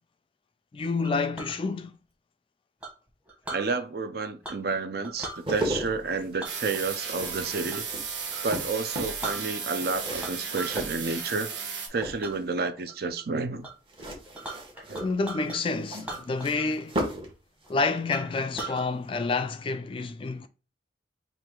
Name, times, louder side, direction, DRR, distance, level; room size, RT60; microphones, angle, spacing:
voice 1, 0.7-1.9 15.0-17.0 17.7-20.5, left 3 dB, 30° left, 0.3 m, -29 dB
Chink clink, 1.0-1.6 2.8-3.7 4.4-4.7 5.0-5.4 6.4-7.9 8.3-8.5 8.9-9.0 9.2-9.8 10.2-10.8 11.2-11.6 12.2-12.4 12.9-13.2 13.6-13.7 14.0-15.6 16.0-16.8 17.1-17.2 17.6-17.7 18.1-18.8, right 2 dB, 10° right, 1.1 m, -39 dB
voice 2, 3.5-7.9 8.4-11.5 11.9-13.7 14.9-15.0, right 4 dB, 60° right, 0.5 m, -30 dB
sound 1, 5.2-11.6 11.9-12.6 13.9-17.4 17.6-17.8, right 1 dB, 30° right, 1.2 m, -36 dB
sound 2, 6.4-11.9, right 6 dB, 85° right, 1.1 m, -35 dB
4.6 x 2.5 x 3.7 m
head